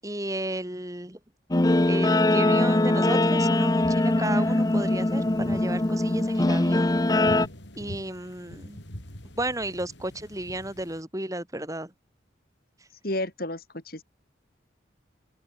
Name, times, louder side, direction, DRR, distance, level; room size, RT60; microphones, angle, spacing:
voice 1, 0.0-1.2 1.9-7.0 7.8-8.8 9.4-11.9 12.8-12.9, right 1 dB, 20° right, 7.0 m, -33 dB
Guitar, 1.5-7.5, left 1 dB, 20° left, 0.6 m, -22 dB
sound 1, 1.7-11.0, equal, 70° left, 5.5 m, -45 dB
voice 2, 4.3-4.6 13.0-14.0, left 1 dB, 50° left, 5.1 m, -33 dB
open air
head